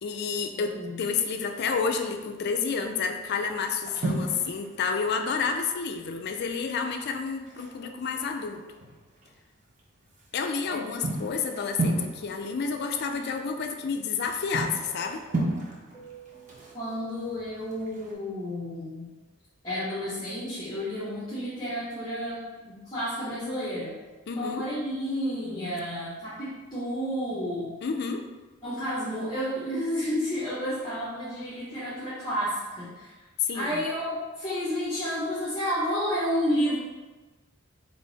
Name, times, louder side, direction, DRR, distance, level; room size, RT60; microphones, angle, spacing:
voice 1, 0.0-8.6 10.3-15.2 24.3-24.7 27.8-28.3 33.4-33.8, left 5 dB, 55° left, 6 dB, 0.4 m, -30 dB
voice 2, 0.5-1.0 10.7-10.8 16.7-19.1 19.6-23.9 24.3-27.8 28.6-33.1 33.5-36.7, equal, 20° left, -9 dB, 0.9 m, -31 dB
sound 1, 1.6-2.2 2.8-3.0 3.3-6.0 6.3-6.4 6.7-6.8 7.3-9.3 9.8-18.1, right 2 dB, 40° right, 0.7 m, -34 dB
Keyboard (musical), 15.9-18.5, right 9 dB, ahead, 1.3 m, -53 dB
3.8 x 2.6 x 4.0 m, 1.2 s
head